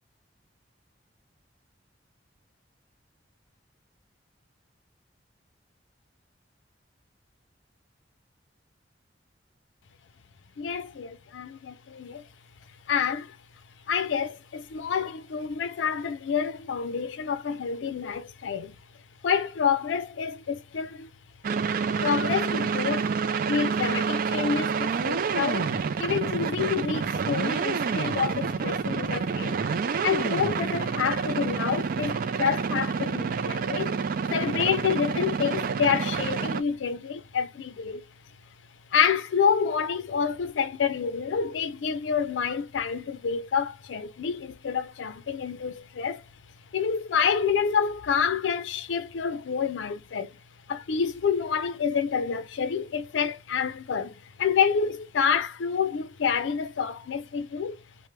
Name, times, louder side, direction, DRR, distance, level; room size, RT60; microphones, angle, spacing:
voice 1, 10.6-12.3 12.9-13.4 13.9-18.8 19.2-21.1 22.0-23.1 23.5-34.0 34.3-38.1 38.9-46.2 46.7-50.4 50.7-57.8, left 6 dB, 85° left, 0.4 m, -28 dB
sound 1, 21.4-36.6, right 5 dB, 50° right, 0.4 m, -28 dB
3.2 x 2.1 x 3.0 m
head